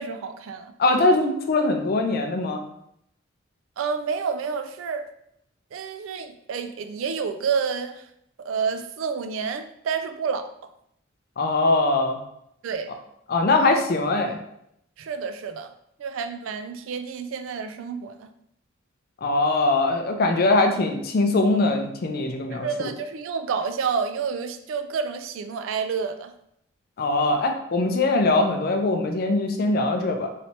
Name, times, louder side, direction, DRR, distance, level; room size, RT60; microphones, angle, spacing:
voice 1, 0.0-0.7 3.8-5.1 5.7-8.0 8.4-10.5 12.6-12.9 15.0-15.7 16.0-18.3 22.5-26.3, right 5 dB, 75° right, 8 dB, 0.3 m, -29 dB
voice 2, 0.8-2.7 11.4-12.2 13.3-14.4 19.2-22.9 27.0-30.3, left 2 dB, 50° left, 4 dB, 0.4 m, -22 dB
3.2 x 2.9 x 2.8 m, 0.75 s
head